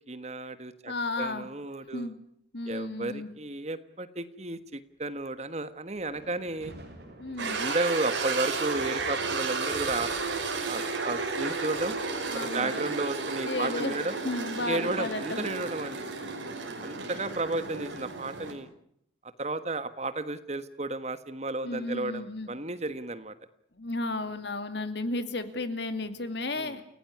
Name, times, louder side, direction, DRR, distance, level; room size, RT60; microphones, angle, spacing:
voice 1, 0.1-2.1 2.7-6.7 7.3-10.1 10.6-12.0 12.3-14.2 14.6-16.0 16.8-18.7 19.2-23.4 26.5-26.8, right 2 dB, 35° right, 12 dB, 1.4 m, -33 dB
voice 2, 0.9-1.5 1.9-2.1 2.5-3.3 7.2-7.6 12.3-12.7 13.5-15.5 21.6-22.5 23.8-26.8, left 2 dB, 60° left, 10 dB, 2.4 m, -33 dB
sound 1, 6.0-12.3, right 1 dB, 55° right, 7.4 m, -51 dB
sound 2, 7.4-18.5, right 4 dB, 80° right, 5.2 m, -33 dB
29.0 x 17.0 x 9.7 m, 0.73 s
head